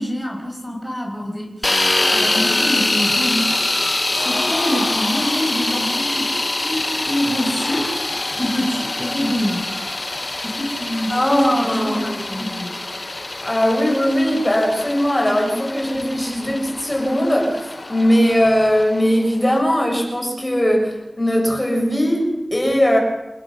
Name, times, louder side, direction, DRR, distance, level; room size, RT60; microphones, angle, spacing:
voice 1, 0.0-7.9 8.4-9.7 10.4-12.7, equal, 5° left, -1 dB, 6.0 m, -26 dB
sound 1, 1.6-19.6, left 2 dB, 40° left, 1.0 m, -24 dB
sound 2, 4.1-18.9, left 2 dB, 70° left, 7.7 m, -36 dB
voice 2, 11.1-12.5 13.4-23.0, equal, 25° left, 1 dB, 6.4 m, -19 dB
29.5 x 17.0 x 6.2 m, 1.0 s
wide cardioid pair, 55°, 0 cm